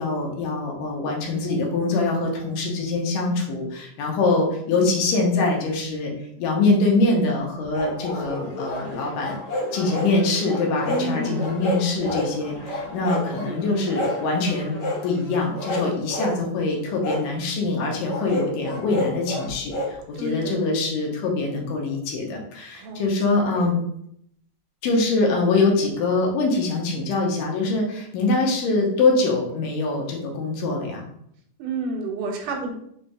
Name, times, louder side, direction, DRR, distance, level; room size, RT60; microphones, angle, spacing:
voice 1, 0.0-6.1 6.4-9.4 9.7-14.7 15.0-23.8 24.8-31.0, left 3 dB, 90° left, 0 dB, 2.5 m, -23 dB
sound 1, 7.7-8.8 9.2-10.1 10.5-11.1 11.4-12.3 12.6-13.5 13.9-14.2 14.8-15.0 15.5-16.4 17.0-17.2 18.1-19.9, left 1 dB, 60° left, 1.6 m, -29 dB
sound 2, 8.3-15.8, equal, 45° left, 0.3 m, -41 dB
voice 2, 10.8-11.6 20.2-20.7 22.8-23.1 23.5-23.7 31.6-32.7, right 2 dB, 80° right, 1 dB, 2.3 m, -30 dB
5.6 x 2.7 x 3.3 m, 0.72 s
omnidirectional pair, 3.7 m